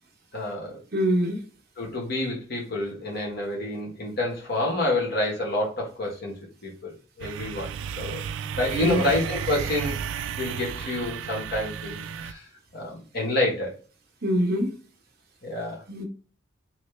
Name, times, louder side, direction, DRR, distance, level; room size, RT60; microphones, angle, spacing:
voice 1, 0.3-0.8 1.8-8.2 8.6-10.0 10.4-12.4 12.7-13.7 15.4-15.8, left 1 dB, 55° left, 1.4 m, -28 dB
voice 2, 0.9-1.4 8.8-9.0 14.2-14.7 15.9-16.0, equal, 55° right, 1.0 m, -24 dB
sound 1, 7.2-12.3, right 7 dB, 70° right, 0.3 m, -33 dB
3.1 x 2.8 x 3.3 m
head